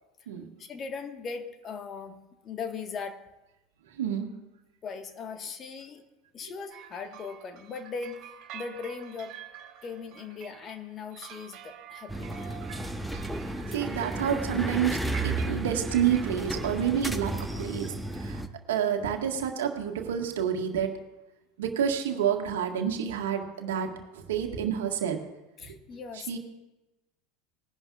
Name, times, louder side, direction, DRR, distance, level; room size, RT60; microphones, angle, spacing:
voice 1, 0.6-2.2 2.4-3.2 4.8-6.0 6.3-8.2 8.5-9.4 9.8-12.6 25.6-26.4, left 5 dB, 35° left, 6 dB, 1.5 m, -39 dB
voice 2, 4.0-4.3 13.7-18.4 18.7-21.0 21.6-25.2 25.6-25.8 26.1-26.4, right 8 dB, 75° right, 4 dB, 1.6 m, -29 dB
sound 1, 6.7-17.8, right 10 dB, 50° right, 2.6 m, -47 dB
sound 2, 12.1-18.5, right 2 dB, ahead, 0.9 m, -33 dB
20.0 x 11.0 x 2.4 m, 1.0 s
hypercardioid pair, 80°, 0 cm